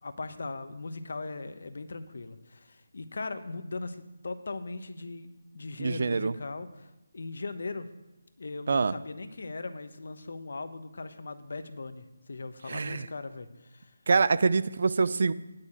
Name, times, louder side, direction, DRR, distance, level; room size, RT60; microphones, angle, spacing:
voice 1, 0.0-7.9 8.4-13.9, left 3 dB, 65° left, 10 dB, 1.0 m, -39 dB
voice 2, 5.8-6.3 8.7-8.9 12.7-13.1 14.1-15.3, right 4 dB, 50° right, 16 dB, 0.5 m, -25 dB
9.9 x 6.2 x 8.6 m, 1.0 s
figure-of-eight pair, 170°, 0 cm